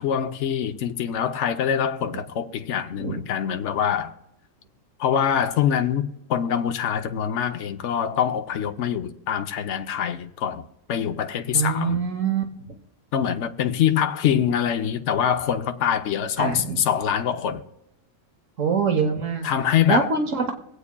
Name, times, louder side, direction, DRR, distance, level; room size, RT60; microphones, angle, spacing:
voice 1, 0.0-4.1 5.0-12.0 13.1-17.6 19.4-20.1, left 9 dB, 65° left, 1.0 m, -24 dB
voice 2, 11.5-12.4 16.4-16.8 18.6-19.5 19.9-20.5, right 5 dB, 70° right, 1.4 m, -24 dB
24.5 x 8.3 x 2.3 m
omnidirectional pair, 1.4 m